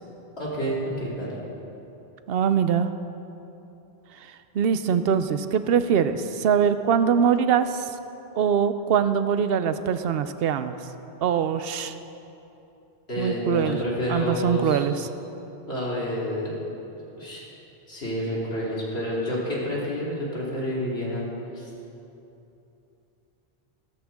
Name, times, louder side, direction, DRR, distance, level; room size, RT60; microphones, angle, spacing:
voice 1, 0.4-1.4 13.1-14.8 15.7-16.6 17.2-17.4 17.9-21.3 21.5-21.7, equal, 85° left, -7 dB, 3.5 m, -29 dB
voice 2, 2.3-2.9 4.5-7.8 8.4-10.8 11.2-11.9 13.2-13.8 14.1-15.1, right 7 dB, 70° right, 11 dB, 0.8 m, -23 dB
17.5 x 13.0 x 3.6 m, 2.9 s
omnidirectional pair, 1.1 m